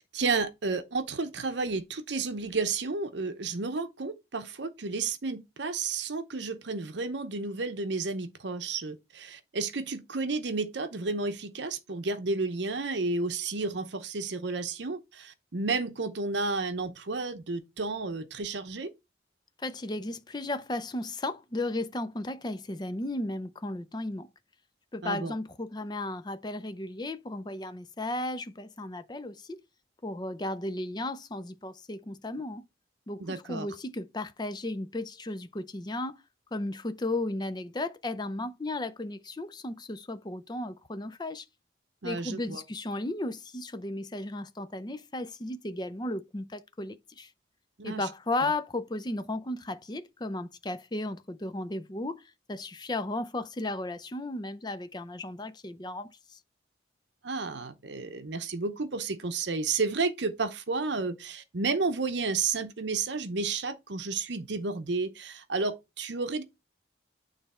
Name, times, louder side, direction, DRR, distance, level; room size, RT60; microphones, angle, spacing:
voice 1, 0.1-18.9 25.0-25.3 33.2-33.7 42.0-42.6 47.8-48.1 48.4-48.5 57.2-66.4, right 4 dB, 70° right, 0.8 m, -32 dB
voice 2, 19.6-24.3 24.9-29.6 30.0-32.6 33.1-36.2 36.5-41.4 42.0-47.3 47.8-52.2 52.5-56.4, left 2 dB, 20° left, 0.5 m, -35 dB
9.1 x 3.3 x 4.2 m
head